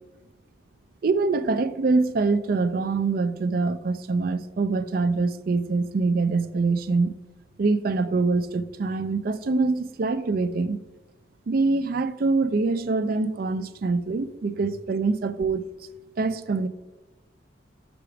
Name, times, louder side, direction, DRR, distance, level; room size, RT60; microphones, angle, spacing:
voice 1, 1.0-7.1 7.6-10.8 11.5-15.6 16.2-16.7, right 3 dB, 50° right, 12 dB, 0.4 m, -24 dB
5.1 x 4.8 x 5.9 m, 1.1 s
head